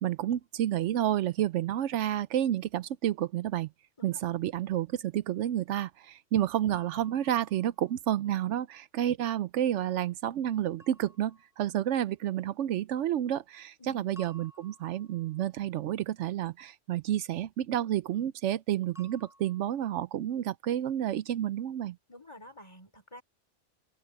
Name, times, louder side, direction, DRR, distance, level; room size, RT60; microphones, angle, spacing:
voice 1, 0.0-3.7 4.0-22.0, right 11 dB, 80° right, 0.9 m, -30 dB
voice 2, 4.0-4.4 13.8-14.1 22.1-23.2, equal, 25° left, 3.3 m, -50 dB
sound 1, 6.7-8.2 10.8-12.0 14.2-15.6 19.0-19.7, equal, ahead, 6.3 m, -57 dB
open air
omnidirectional pair, 1.2 m